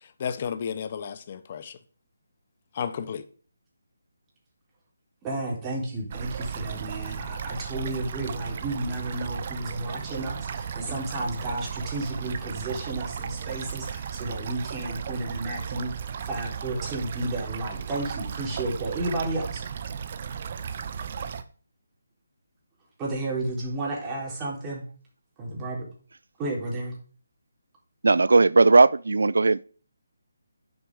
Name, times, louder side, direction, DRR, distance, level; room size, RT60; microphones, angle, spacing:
voice 1, 0.2-1.8 2.8-3.2, left 7 dB, 35° left, 1.0 m, -32 dB
voice 2, 5.2-19.7 23.0-24.8 25.4-25.8 26.4-26.9, right 2 dB, 15° right, 4.0 m, -32 dB
sound 1, 6.1-21.4, right 7 dB, 40° right, 0.9 m, -35 dB
voice 3, 28.0-29.6, right 3 dB, 70° right, 0.5 m, -17 dB
11.0 x 6.7 x 5.0 m
figure-of-eight pair, 150°, 0 cm